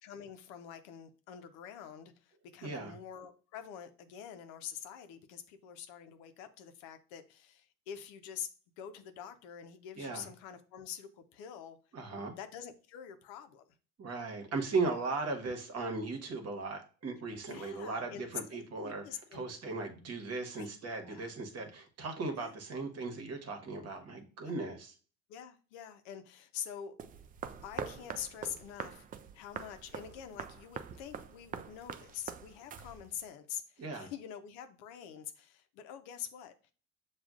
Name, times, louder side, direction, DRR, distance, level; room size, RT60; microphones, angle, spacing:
voice 1, 0.0-8.5 8.8-11.8 12.4-13.6 17.5-19.5 20.5-21.3 22.3-22.6 24.4-24.5 25.3-26.9 27.6-29.1 29.3-36.7, left 8 dB, 70° left, 0.7 m, -46 dB
voice 2, 2.6-2.9 10.0-10.3 11.9-12.3 14.0-19.0 19.3-24.9 33.8-34.1, right 3 dB, 45° right, 1.2 m, -37 dB
sound 1, 27.0-33.3, right 7 dB, 25° right, 0.3 m, -44 dB
6.9 x 2.4 x 2.4 m
hypercardioid pair, 70°, 36 cm